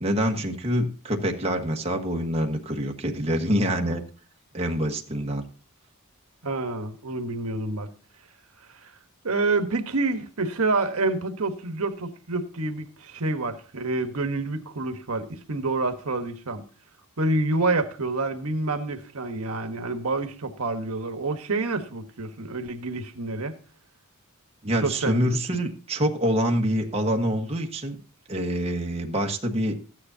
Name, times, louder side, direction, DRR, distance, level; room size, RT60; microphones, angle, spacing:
voice 1, 0.0-4.0 4.5-5.5 24.6-28.0 28.3-29.7, equal, 30° right, 1.4 m, -26 dB
voice 2, 6.4-7.9 8.8-8.9 9.2-16.6 17.2-23.5 24.8-25.3, right 3 dB, 75° right, 1.3 m, -28 dB
14.0 x 9.8 x 2.8 m
head